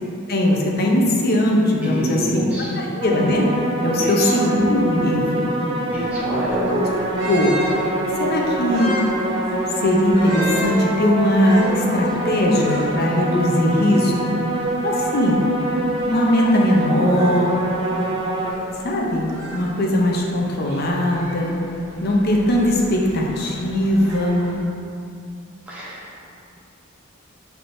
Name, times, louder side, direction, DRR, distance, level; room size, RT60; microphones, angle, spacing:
voice 1, 0.3-2.4 2.7-3.5 3.8-5.5 6.7-6.9 7.3-7.5 8.2-8.9 9.8-14.5 14.8-15.4 16.1-17.5 18.8-21.6 22.0-24.4, left 1 dB, 50° left, -1 dB, 0.6 m, -19 dB
voice 2, 1.8-2.7 4.0-4.4 5.9-6.6 25.7-26.1, equal, 5° right, -8 dB, 0.9 m, -28 dB
sound 1, 3.0-18.5, right 1 dB, 25° right, 0.4 m, -25 dB
sound 2, 5.9-24.6, equal, 60° right, 1.0 m, -36 dB
5.9 x 3.4 x 2.6 m, 2.6 s
head